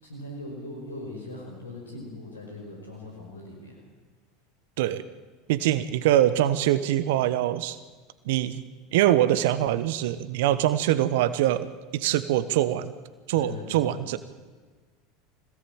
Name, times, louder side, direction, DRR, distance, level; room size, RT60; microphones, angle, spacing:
voice 1, 0.0-3.8 13.3-14.0, left 2 dB, 85° left, 0 dB, 5.4 m, -40 dB
voice 2, 5.5-7.8 8.2-8.6 8.9-11.7 11.9-12.9 13.3-14.2, right 13 dB, 65° right, 14 dB, 1.2 m, -23 dB
25.5 x 18.5 x 8.9 m, 1.4 s
hypercardioid pair, 80°, 0 cm